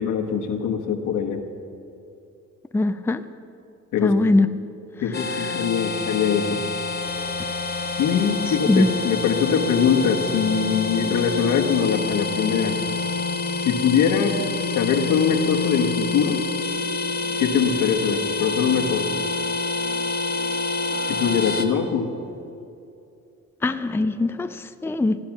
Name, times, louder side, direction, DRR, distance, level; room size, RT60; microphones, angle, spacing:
voice 1, 0.0-1.4 3.9-4.1 5.0-6.6 8.0-12.8 13.6-14.4 14.7-16.4 17.4-19.1 21.1-22.1, left 7 dB, 85° left, 3 dB, 1.4 m, -22 dB
voice 2, 2.7-3.2 4.0-4.5 8.7-8.9 23.6-25.2, left 2 dB, 10° left, 10 dB, 0.5 m, -21 dB
sound 1, 5.1-21.6, left 3 dB, 35° left, 1.4 m, -27 dB
15.5 x 10.5 x 5.9 m, 2.5 s
cardioid pair, 90°, 30 cm